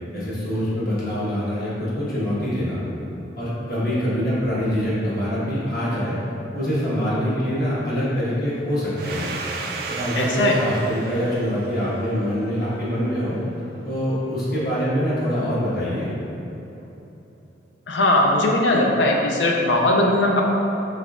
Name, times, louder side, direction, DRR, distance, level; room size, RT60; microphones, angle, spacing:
voice 1, 0.1-2.8 3.4-6.2 6.5-9.3 9.9-13.4 13.8-16.1, equal, 50° left, -9 dB, 1.3 m, -24 dB
Domestic sounds home sounds, 9.0-13.4, right 3 dB, 50° right, 0.3 m, -34 dB
voice 2, 10.2-10.6 17.9-20.4, left 1 dB, 70° left, 0 dB, 0.5 m, -19 dB
5.4 x 3.5 x 2.4 m, 3.0 s
head